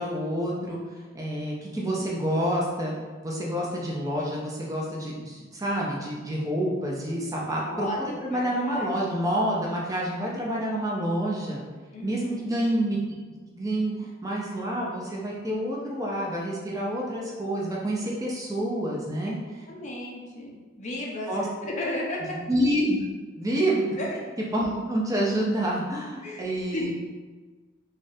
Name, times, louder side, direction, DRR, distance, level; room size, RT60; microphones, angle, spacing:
voice 1, 0.0-2.9 3.2-7.9 8.2-11.6 12.0-13.0 13.5-19.7 21.3-21.4 22.5-23.0 23.4-24.0 24.5-26.9, right 1 dB, 15° right, -3 dB, 0.4 m, -28 dB
voice 2, 7.6-8.9 11.9-12.4 19.7-21.3 21.6-22.4 24.0-24.1 26.2-26.4 26.7-26.9, left 1 dB, 35° left, -2 dB, 0.5 m, -34 dB
3.2 x 2.4 x 2.6 m, 1.4 s
head